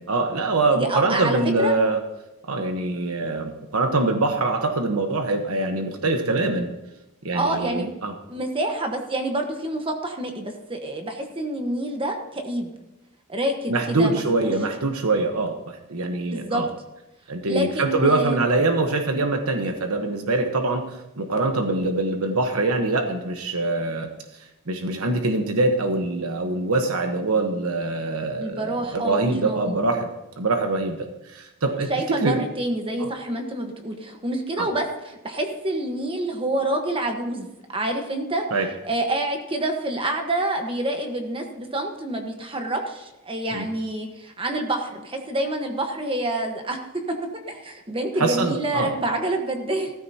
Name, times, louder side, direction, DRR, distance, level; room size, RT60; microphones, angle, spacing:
voice 1, 0.0-2.0 2.5-6.7 7.2-8.1 13.7-16.7 17.3-24.1 24.7-30.1 30.4-32.4 33.0-33.1 34.6-34.7 38.5-38.7 43.5-43.6 48.2-48.9, right 2 dB, 80° right, 5 dB, 1.1 m, -24 dB
voice 2, 0.7-1.8 7.3-7.9 8.3-12.7 13.3-14.5 16.3-16.6 17.4-18.5 28.4-29.8 31.9-38.5 38.8-46.8 47.1-47.2 47.5-49.9, right 1 dB, 25° right, 3 dB, 1.2 m, -27 dB
15.5 x 14.0 x 2.8 m, 0.95 s
head